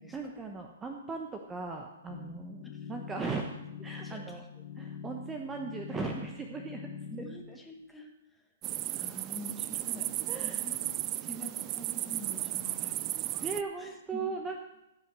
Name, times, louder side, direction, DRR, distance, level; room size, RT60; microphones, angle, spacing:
voice 1, 0.1-3.5 3.8-4.4 4.8-6.9 7.5-7.6 10.3-10.8 13.4-14.6, right 4 dB, 15° right, 3 dB, 1.0 m, -38 dB
sound 1, 2.1-7.4, left 6 dB, 80° left, 3.0 m, -44 dB
voice 2, 4.0-4.4 7.1-8.1 8.9-10.1 10.4-10.8 11.2-13.0 13.8-14.2, left 1 dB, 5° left, 2 dB, 1.7 m, -46 dB
sound 2, 8.6-13.6, right 16 dB, 30° right, 0.4 m, -35 dB
16.0 x 5.8 x 7.5 m, 0.93 s
hypercardioid pair, 145°, 0 cm